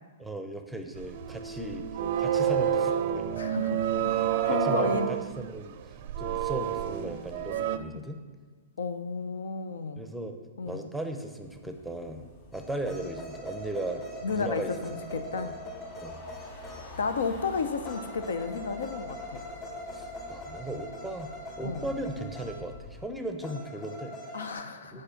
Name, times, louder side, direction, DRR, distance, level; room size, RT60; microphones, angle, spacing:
voice 1, 0.2-1.9 2.2-3.4 4.5-5.8 6.2-8.2 10.0-10.4 10.6-14.0 14.3-15.0 15.3-15.5 16.0-16.2 19.9-21.3 21.6-24.2 24.9-25.0, right 1 dB, ahead, 5 dB, 0.6 m, -37 dB
sound 1, 1.0-7.8, right 9 dB, 50° right, 0.4 m, -29 dB
voice 2, 3.4-5.1 8.8-10.1 10.6-10.9 14.2-15.5 17.0-19.4 21.6-21.9 24.3-25.0, left 4 dB, 85° left, 9 dB, 0.6 m, -32 dB
sound 2, 11.4-23.0, left 2 dB, 50° left, 2.3 m, -49 dB
sound 3, 12.5-17.2 17.8-22.7 23.4-24.5, left 1 dB, 20° left, 1.6 m, -42 dB
6.6 x 4.9 x 5.8 m, 1.5 s
hypercardioid pair, 145°, 0 cm